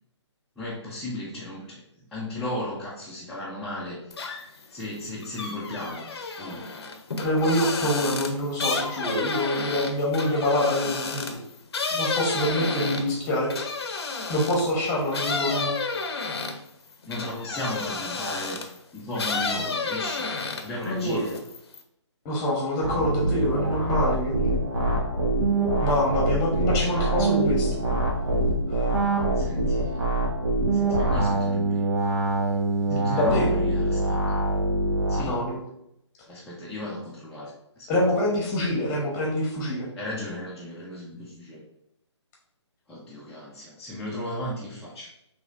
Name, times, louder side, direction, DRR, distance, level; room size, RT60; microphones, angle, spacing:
voice 1, 0.6-1.8 2.1-4.0 4.7-6.1 6.4-6.6 17.1-18.7 18.9-20.3 20.6-21.3 29.4-30.1 30.7-31.8 32.9-34.3 35.1-35.4 36.3-37.5 37.8-37.9 40.0-41.6 42.9-45.1, left 1 dB, 5° left, -10 dB, 0.4 m, -35 dB
sound 1, 4.1-4.6 5.0-14.7 15.1-18.8 19.1-20.8 21.2-21.8, left 4 dB, 60° left, 0.6 m, -31 dB
voice 2, 7.2-11.4 11.9-13.5 14.3-15.8 20.8-21.2 22.2-24.6 25.8-27.7 28.7-29.0 32.9-33.5 35.2-35.6 37.9-39.9, left 1 dB, 20° left, -2 dB, 1.0 m, -26 dB
sound 2, 22.8-35.2, right 2 dB, 70° right, 1.2 m, -24 dB
4.8 x 3.1 x 2.5 m, 0.80 s
figure-of-eight pair, 145°, 15 cm